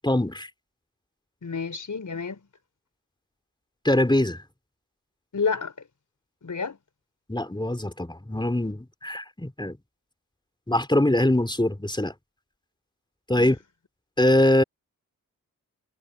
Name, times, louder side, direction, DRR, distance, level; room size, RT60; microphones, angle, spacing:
voice 1, 0.0-0.5 3.8-4.4 7.3-9.8 10.7-12.1 13.3-13.6 14.2-14.6, left 1 dB, 15° left, 4.0 m, -23 dB
voice 2, 1.4-2.5 5.3-5.7 6.4-6.8 13.4-13.6, left 5 dB, 55° left, 4.8 m, -29 dB
cardioid pair, 45°, 36 cm